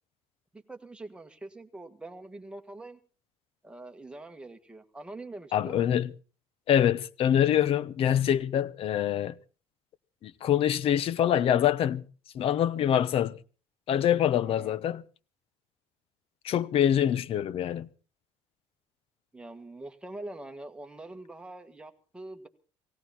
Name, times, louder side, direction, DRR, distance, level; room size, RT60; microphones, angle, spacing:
voice 1, 0.5-3.0 3.6-5.9 14.4-14.8 19.3-22.5, right 2 dB, 10° right, 1.7 m, -44 dB
voice 2, 5.5-6.1 6.7-9.3 10.2-12.0 12.3-13.4 13.9-15.0 16.4-17.9, left 10 dB, 50° left, 0.9 m, -25 dB
18.0 x 17.0 x 4.3 m
cardioid pair, 125°, 12 cm